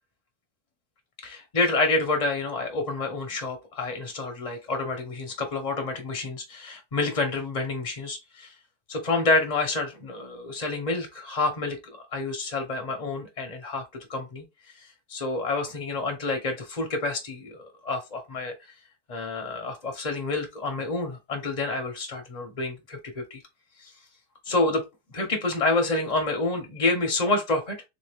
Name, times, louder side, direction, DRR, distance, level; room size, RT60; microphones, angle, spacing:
voice 1, 1.2-8.5 8.9-14.4 15.1-18.5 19.1-23.4 23.8-23.9 24.4-24.8 25.1-27.8, left 3 dB, 45° left, 0.5 m, -28 dB
3.5 x 3.2 x 3.2 m
omnidirectional pair, 1.8 m